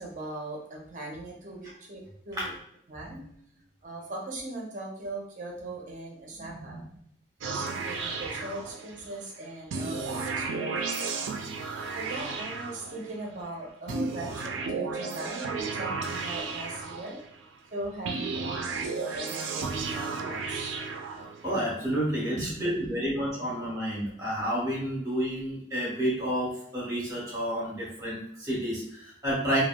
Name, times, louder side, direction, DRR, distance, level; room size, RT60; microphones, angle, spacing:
voice 1, 0.0-2.5 2.9-3.3 3.8-6.9 7.4-10.8 11.9-17.2 17.7-20.8 22.4-23.1 23.4-23.5, right 2 dB, 40° right, -1 dB, 0.6 m, -39 dB
sound 1, 7.4-9.2 9.7-13.3 13.9-17.5 18.1-21.6, right 4 dB, 75° right, 0.4 m, -33 dB
voice 2, 21.4-29.6, equal, 20° right, -5 dB, 1.1 m, -30 dB
3.1 x 2.2 x 2.2 m, 0.71 s
head